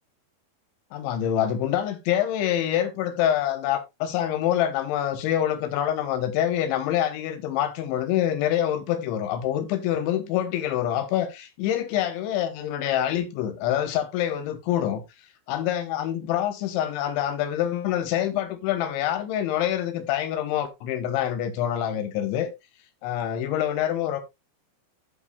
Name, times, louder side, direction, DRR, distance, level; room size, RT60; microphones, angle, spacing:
voice 1, 0.9-15.0 15.5-22.5 23.0-24.2, left 11 dB, 75° left, 3.4 m, -26 dB
15.5 x 5.4 x 2.5 m
omnidirectional pair, 5.6 m